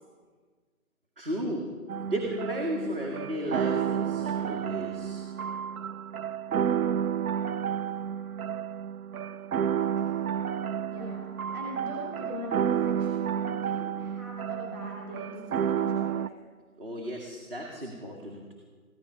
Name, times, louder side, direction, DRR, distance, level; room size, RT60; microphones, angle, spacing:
voice 1, 1.2-1.7 2.0-5.2 16.8-18.4, equal, 40° right, 0 dB, 1.9 m, -34 dB
sound 1, 1.9-16.3, right 8 dB, 75° right, 0.5 m, -31 dB
voice 2, 10.9-11.2 11.5-16.4, left 1 dB, 15° right, -5 dB, 2.3 m, -42 dB
15.0 x 13.0 x 5.6 m, 1.5 s
hypercardioid pair, 175°, 43 cm